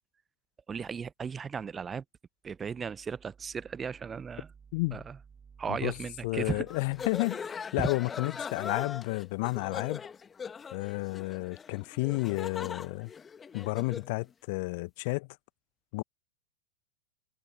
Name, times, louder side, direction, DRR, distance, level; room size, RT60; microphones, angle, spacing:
voice 1, 0.7-2.0 2.4-4.5 4.9-5.2 5.6-6.7 7.8-7.9, right 6 dB, 20° right, 0.7 m, -36 dB
voice 2, 4.7-5.0 5.7-5.9 6.2-7.4 7.7-10.0 10.7-13.1 13.5-15.3 15.9-16.0, left 26 dB, 50° left, 1.4 m, -31 dB
sound 1, 6.7-14.1, left 6 dB, 20° left, 2.2 m, -40 dB
figure-of-eight pair, 90°, 0 cm